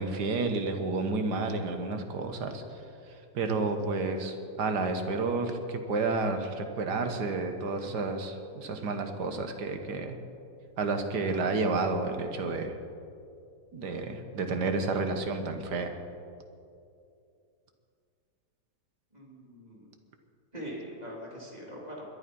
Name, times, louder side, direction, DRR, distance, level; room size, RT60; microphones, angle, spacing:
voice 1, 0.0-2.6 3.3-10.2 10.8-12.7 13.7-15.9, right 3 dB, 90° right, 6 dB, 1.9 m, -30 dB
voice 2, 19.1-19.9 20.5-22.0, equal, 25° right, -3 dB, 3.3 m, -42 dB
21.5 x 11.5 x 5.4 m, 2.5 s
omnidirectional pair, 1.7 m